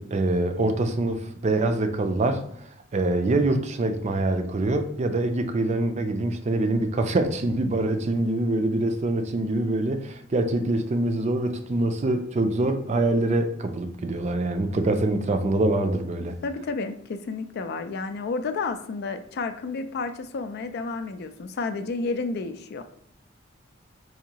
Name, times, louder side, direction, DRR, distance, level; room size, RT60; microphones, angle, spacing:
voice 1, 0.0-2.4 2.9-16.4, right 2 dB, 35° right, 0.4 m, -24 dB
voice 2, 16.4-22.9, left 4 dB, 55° left, 0.3 m, -31 dB
4.8 x 2.6 x 2.8 m
head